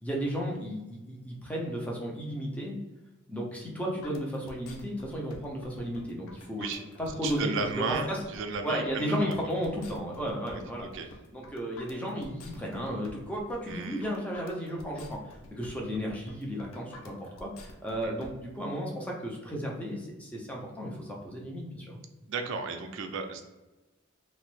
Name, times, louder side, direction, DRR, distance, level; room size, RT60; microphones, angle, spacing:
voice 1, 0.0-2.8 3.3-8.2 8.6-10.9 11.3-22.0, equal, 5° left, -2 dB, 0.5 m, -34 dB
sound 1, 4.0-18.3, left 1 dB, 90° left, 0.5 m, -49 dB
voice 2, 7.2-9.3 10.5-10.6 10.9-11.1 13.7-14.0 18.0-18.1 22.3-23.4, right 5 dB, 60° right, 6 dB, 0.4 m, -34 dB
3.0 x 2.0 x 3.1 m, 1.1 s
head